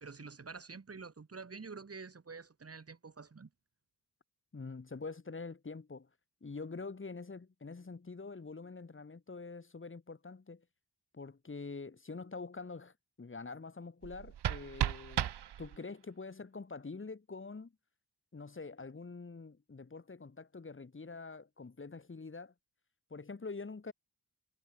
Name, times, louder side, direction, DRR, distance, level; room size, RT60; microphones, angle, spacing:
voice 1, 0.0-3.5, right 4 dB, 35° right, 1.5 m, -48 dB
voice 2, 4.5-6.1 6.4-10.7 11.1-15.3 15.6-17.7 18.3-22.5 23.1-23.9, left 4 dB, 30° left, 1.7 m, -45 dB
sound 1, 14.0-16.0, right 10 dB, 80° right, 0.7 m, -36 dB
wide cardioid pair, 120°, 40 cm